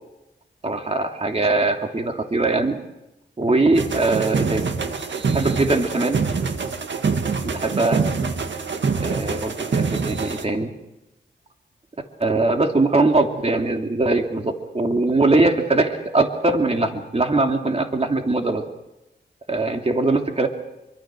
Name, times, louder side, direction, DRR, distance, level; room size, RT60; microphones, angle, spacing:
voice 1, 0.6-2.8 3.4-4.7 5.3-6.2 7.4-8.0 9.0-10.7 12.2-18.6 19.5-20.5, right 2 dB, 35° right, 3 dB, 2.8 m, -21 dB
sound 1, 3.7-10.4, right 5 dB, 75° right, 1.9 m, -25 dB
26.0 x 24.5 x 6.3 m, 0.94 s
wide cardioid pair, 95°, 19 cm